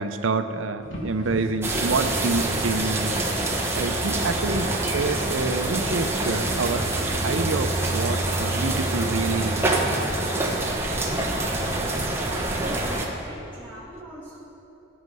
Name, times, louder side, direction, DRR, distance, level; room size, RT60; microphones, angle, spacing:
voice 1, 0.0-3.1 3.8-6.8 7.2-9.7, right 3 dB, 65° right, 9 dB, 0.6 m, -27 dB
sound 1, 0.8-8.3, equal, 70° left, 2.0 m, -43 dB
sound 2, 1.6-13.1, right 2 dB, 10° right, 1.1 m, -25 dB
voice 2, 12.3-14.4, equal, 10° left, -7 dB, 1.5 m, -42 dB
13.5 x 9.6 x 5.4 m, 2.9 s
head